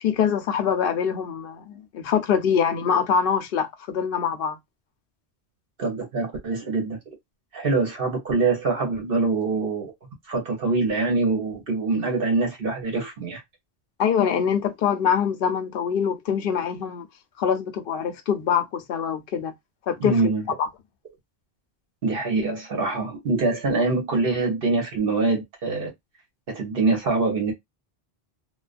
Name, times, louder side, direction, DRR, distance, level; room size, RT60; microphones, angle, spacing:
voice 1, 0.0-4.6 14.0-17.1 17.4-19.5 19.9-20.2 20.6-20.7, left 7 dB, 65° left, 0.7 m, -24 dB
voice 2, 5.8-7.0 7.5-9.9 10.3-13.4 20.0-20.4 22.0-25.9 26.5-27.5, right 3 dB, 65° right, 1.0 m, -24 dB
2.3 x 2.2 x 2.4 m
omnidirectional pair, 1.0 m